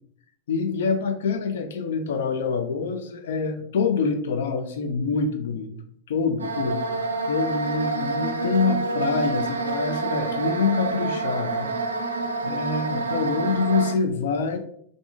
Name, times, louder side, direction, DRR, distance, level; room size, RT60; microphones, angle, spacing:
voice 1, 0.5-5.7 6.1-6.8 7.3-11.7 12.4-14.6, left 5 dB, 60° left, 8 dB, 0.4 m, -26 dB
sound 1, 6.4-13.9, right 3 dB, 75° right, 0.3 m, -27 dB
3.5 x 2.5 x 2.5 m, 0.64 s
figure-of-eight pair, 90°, 0 cm